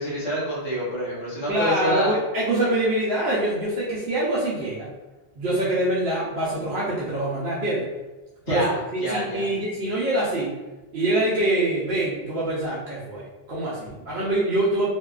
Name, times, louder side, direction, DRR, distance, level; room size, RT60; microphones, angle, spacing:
voice 1, 0.0-2.1 8.5-9.5, equal, 45° left, -8 dB, 0.9 m, -27 dB
voice 2, 1.5-4.9 5.4-7.8 8.5-8.6 8.9-10.5 10.9-14.9, right 1 dB, 70° right, -8 dB, 0.9 m, -25 dB
2.7 x 2.3 x 2.3 m, 1.1 s
omnidirectional pair, 1.1 m